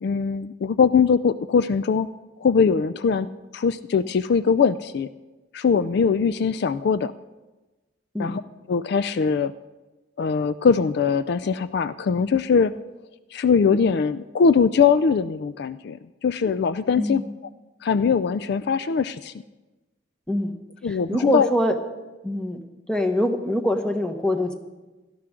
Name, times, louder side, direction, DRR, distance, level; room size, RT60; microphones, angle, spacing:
voice 1, 0.0-2.1 2.4-5.1 5.5-7.1 8.2-8.4 8.7-9.5 10.2-12.7 13.3-17.2 17.8-19.3 20.8-21.5, left 5 dB, 60° left, 14 dB, 0.3 m, -21 dB
voice 2, 16.9-17.3 20.3-20.6 20.8-21.8 22.2-22.6 22.9-24.5, equal, 5° left, 5 dB, 1.1 m, -24 dB
17.0 x 12.5 x 3.7 m, 1.1 s
head